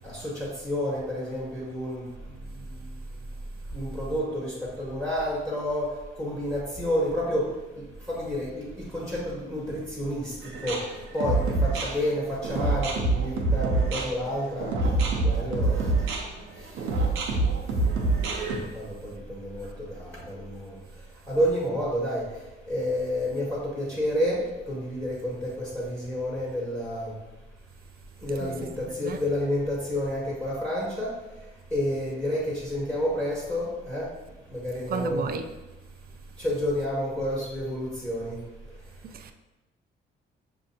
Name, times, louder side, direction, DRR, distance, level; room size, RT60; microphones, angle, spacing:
voice 1, 0.0-2.0 3.7-5.9 6.2-10.3 10.6-10.8 11.1-16.0 16.6-16.7 18.7-20.8 21.3-22.3 22.7-27.1 28.2-31.1 31.7-34.1 34.5-35.3 36.4-38.4, equal, 5° left, 1.3 m, -30 dB
sound 1, 10.4-18.6, right 2 dB, 90° right, 0.7 m, -26 dB
voice 2, 34.9-35.5 39.0-39.3, right 5 dB, 50° right, 0.4 m, -32 dB
6.1 x 2.6 x 2.7 m
cardioid pair, 90°, 20 cm